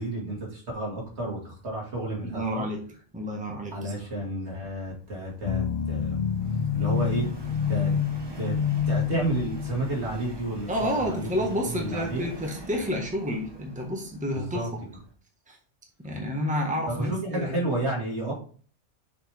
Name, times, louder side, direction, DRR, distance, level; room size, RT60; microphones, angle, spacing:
voice 1, 0.0-2.7 3.7-6.2 6.7-7.3 7.7-7.9 8.4-8.6 8.8-11.3 11.6-12.2 14.3-14.7 16.9-18.3, right 1 dB, 65° right, -2 dB, 2.7 m, -31 dB
voice 2, 2.2-2.8 3.1-3.9 10.7-14.6 15.5-15.6 16.0-17.6, equal, 5° right, 0 dB, 1.5 m, -30 dB
Subway metro underground, 3.8-15.1, right 1 dB, 20° right, 1.0 m, -45 dB
sound 1, 5.4-10.0, left 7 dB, 75° left, 0.3 m, -27 dB
6.4 x 5.7 x 3.5 m, 0.42 s
omnidirectional pair, 1.2 m